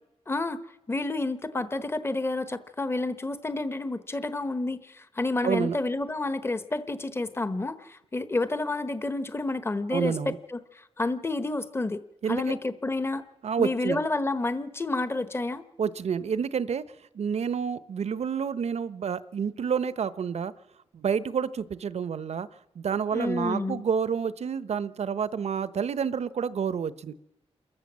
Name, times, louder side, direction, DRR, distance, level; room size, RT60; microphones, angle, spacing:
voice 1, 0.3-0.6 0.9-10.6 11.0-12.0 12.3-13.2 13.6-15.6 23.1-23.8, left 2 dB, 20° left, 12 dB, 1.1 m, -29 dB
voice 2, 5.4-5.8 9.9-10.4 12.2-12.6 13.4-14.0 15.8-20.5 20.9-22.5 22.7-27.1, right 7 dB, 75° right, 15 dB, 0.9 m, -29 dB
28.0 x 14.0 x 7.5 m, 0.93 s
wide cardioid pair, 90°, 11 cm